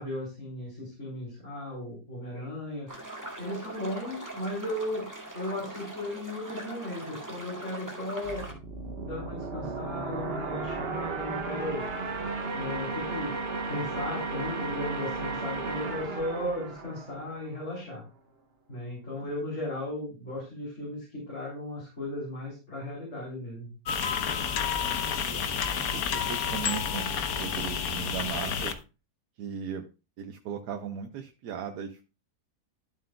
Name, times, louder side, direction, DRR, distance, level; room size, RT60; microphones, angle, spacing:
voice 1, 0.0-2.9 3.4-5.1 5.3-8.4 9.0-11.8 12.5-13.3 13.7-18.0 18.7-23.7, left 1 dB, 45° left, -5 dB, 3.6 m, -36 dB
sound 1, 2.9-8.5, right 1 dB, 10° right, 1.9 m, -41 dB
sound 2, 8.2-17.8, right 3 dB, 40° right, 1.3 m, -34 dB
sound 3, 23.9-28.7, left 7 dB, 65° left, 1.3 m, -30 dB
voice 2, 24.5-25.4 25.8-28.7 29.4-29.9 30.2-32.0, right 8 dB, 85° right, 5 dB, 1.3 m, -38 dB
12.0 x 7.4 x 2.2 m, 0.31 s
omnidirectional pair, 1.7 m